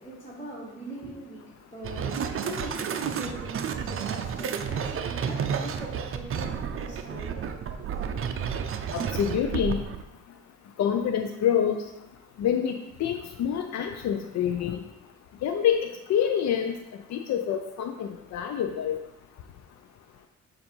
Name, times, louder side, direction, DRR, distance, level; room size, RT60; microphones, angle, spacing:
voice 1, 0.0-7.5, right 1 dB, 20° left, -6 dB, 1.7 m, -41 dB
sound 1, 1.8-10.0, right 7 dB, 45° right, 0.5 m, -31 dB
voice 2, 8.9-9.8 10.8-11.8 12.4-14.8 15.4-15.8 16.1-16.7 17.1-19.0, left 8 dB, 60° left, 5 dB, 0.5 m, -26 dB
7.0 x 2.6 x 5.3 m, 0.97 s
cardioid pair, 90°, 30 cm